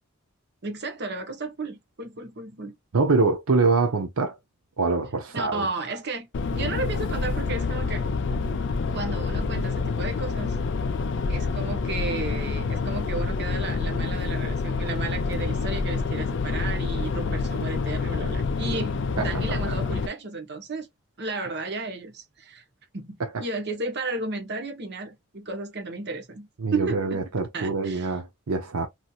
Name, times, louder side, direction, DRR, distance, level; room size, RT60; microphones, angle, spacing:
voice 1, 0.6-2.7 5.3-8.0 8.9-10.6 11.3-20.9 21.2-22.6 22.9-27.2 27.5-28.1, right 3 dB, 50° right, 1.0 m, -33 dB
voice 2, 2.9-4.4 4.8-5.7 19.2-19.3 23.2-23.4 26.6-28.9, right 3 dB, 80° right, 0.7 m, -24 dB
sound 1, 6.3-20.1, left 4 dB, 55° left, 0.4 m, -27 dB
3.1 x 2.8 x 2.3 m
head